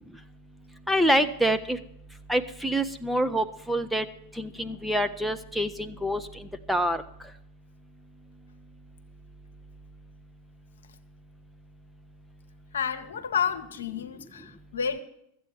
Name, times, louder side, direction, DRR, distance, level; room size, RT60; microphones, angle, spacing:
voice 1, 0.9-1.8 2.3-4.1 4.4-7.0, equal, ahead, 0.6 m, -26 dB
voice 2, 12.7-15.0, left 7 dB, 65° left, 0.9 m, -30 dB
13.5 x 8.2 x 7.2 m
figure-of-eight pair, 90°, 0 cm